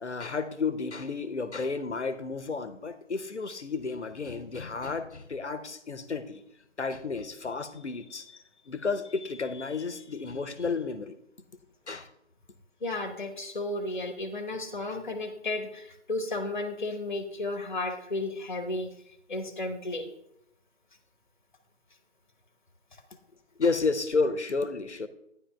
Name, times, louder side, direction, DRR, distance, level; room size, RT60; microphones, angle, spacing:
voice 1, 0.0-6.4 6.8-8.4 8.7-11.2 11.9-12.1 23.6-25.1, left 4 dB, 65° left, 12 dB, 0.8 m, -31 dB
voice 2, 12.8-18.9 19.3-20.1, left 2 dB, 40° left, 8 dB, 1.1 m, -33 dB
9.9 x 9.7 x 2.3 m, 0.78 s
figure-of-eight pair, 155°, 37 cm